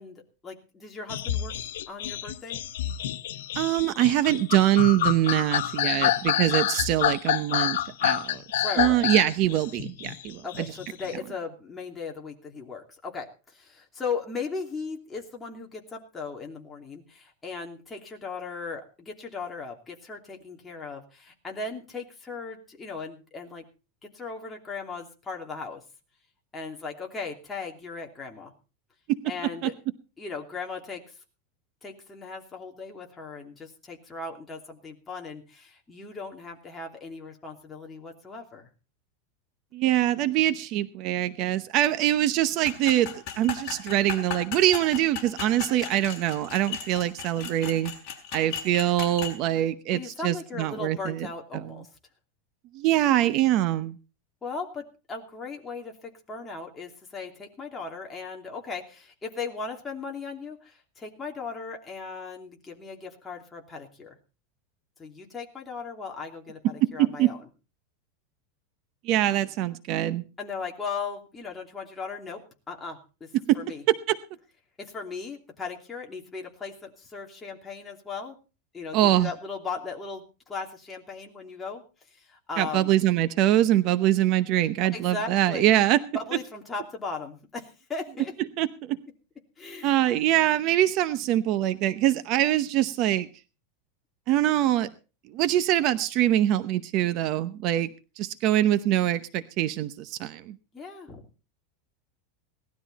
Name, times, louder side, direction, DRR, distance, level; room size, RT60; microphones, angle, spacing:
voice 1, 0.0-1.5 1.9-2.6 8.6-9.0 10.4-23.6 24.0-25.8 26.5-28.5 29.3-29.7 30.2-31.1 31.8-38.7 49.9-51.9 54.4-64.2 65.0-67.4 70.4-73.3 73.5-73.8 74.8-78.4 78.7-81.8 82.1-82.9 84.9-85.7 86.1-88.3 89.6-90.2 100.7-101.2, left 4 dB, 15° left, 0 dB, 2.9 m, -37 dB
sound 1, 1.1-11.1, left 11 dB, 90° left, 1.0 m, -28 dB
voice 2, 3.6-8.4 8.8-10.6 29.1-29.2 29.6-29.7 39.7-47.9 48.3-51.3 51.5-51.7 52.7-54.0 67.0-67.3 69.0-70.2 73.5-73.6 74.1-74.2 78.9-79.3 82.6-86.0 88.6-89.0 89.8-93.3 94.3-94.9 95.3-97.9 98.2-100.5, right 13 dB, 40° right, 12 dB, 0.8 m, -24 dB
sound 2, 42.6-49.4, left 8 dB, 35° left, 5.8 m, -36 dB
18.5 x 12.5 x 4.2 m, 0.35 s
supercardioid pair, 160°, 0 cm